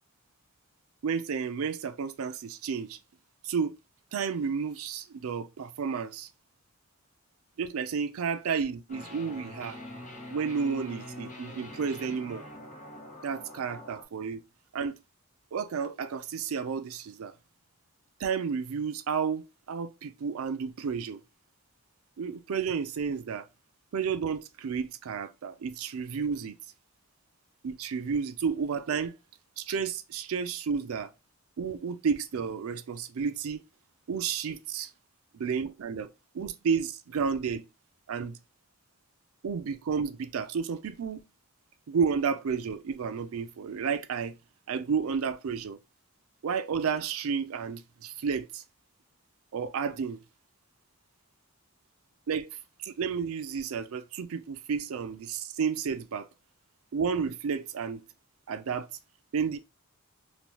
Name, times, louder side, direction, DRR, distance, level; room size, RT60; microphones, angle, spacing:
voice 1, 1.0-3.0 3.4-3.8 4.1-6.3 7.6-9.8 10.3-12.4 13.2-14.4 14.7-15.0 15.5-17.3 18.2-21.2 22.2-23.5 23.9-26.6 27.6-29.1 29.6-31.1 31.6-33.6 34.1-34.9 35.3-36.1 36.3-37.6 38.1-38.4 39.4-41.2 41.9-44.3 44.7-45.8 46.4-48.6 49.5-50.2 52.3-52.5 52.8-56.3 56.9-58.0 58.5-58.9 59.3-59.6, right 6 dB, 80° right, 0.4 m, -31 dB
sound 1, 8.9-14.0, left 1 dB, 35° left, 0.7 m, -44 dB
3.2 x 2.2 x 2.7 m
head